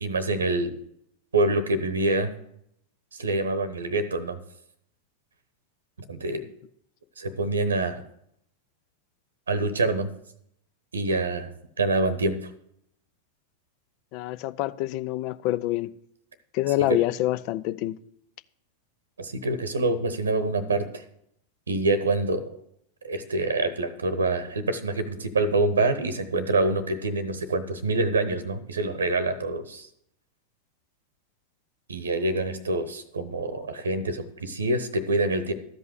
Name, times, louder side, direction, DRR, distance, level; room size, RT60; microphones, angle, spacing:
voice 1, 0.0-0.7 1.3-2.3 3.1-4.4 6.1-6.4 7.2-8.0 9.5-10.1 10.9-11.5 11.8-12.5 16.9-17.0 19.2-21.0 21.7-22.4 23.0-29.9 31.9-35.5, right 2 dB, 70° right, 0.9 m, -26 dB
voice 2, 14.1-15.9 16.5-18.0, left 15 dB, 45° left, 0.5 m, -26 dB
13.0 x 5.4 x 8.0 m
figure-of-eight pair, 90°, 0 cm